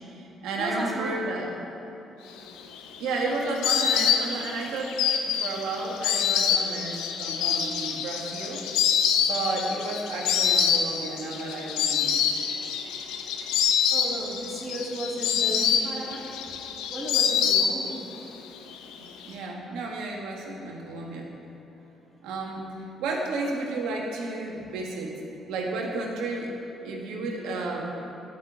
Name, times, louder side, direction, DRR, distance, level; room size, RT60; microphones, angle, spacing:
voice 1, 0.0-1.5 3.0-8.6 9.2-12.2 19.0-21.3 22.2-22.6 23.0-25.1 25.5-26.5 26.8-27.8, right 2 dB, 85° right, -1 dB, 1.8 m, -32 dB
voice 2, 0.6-1.1 13.9-16.2 16.9-18.1, right 1 dB, 5° right, -6 dB, 2.6 m, -34 dB
Insect, 2.5-18.2 18.4-19.3, left 7 dB, 90° left, 0.8 m, -26 dB
11.5 x 6.0 x 7.9 m, 3.0 s
supercardioid pair, 70°, 0 cm